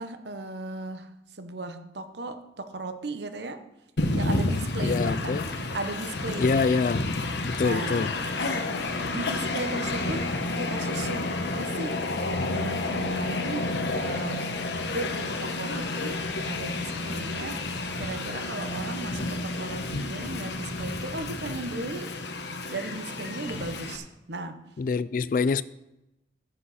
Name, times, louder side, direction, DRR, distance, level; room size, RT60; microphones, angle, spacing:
voice 1, 0.0-3.6 4.1-6.9 7.6-8.1 9.1-12.0 12.5-14.6 14.8-17.7 18.0-22.1 22.7-24.7, right 2 dB, 65° right, 1.0 m, -36 dB
Train, 4.0-24.0, left 2 dB, 65° left, 1.1 m, -30 dB
voice 2, 4.8-5.5 6.4-7.1 7.4-8.1 24.8-25.6, left 4 dB, 45° left, 0.3 m, -25 dB
sound 1, 15.0-20.5, right 1 dB, 25° right, 3.7 m, -50 dB
14.0 x 7.8 x 4.2 m
head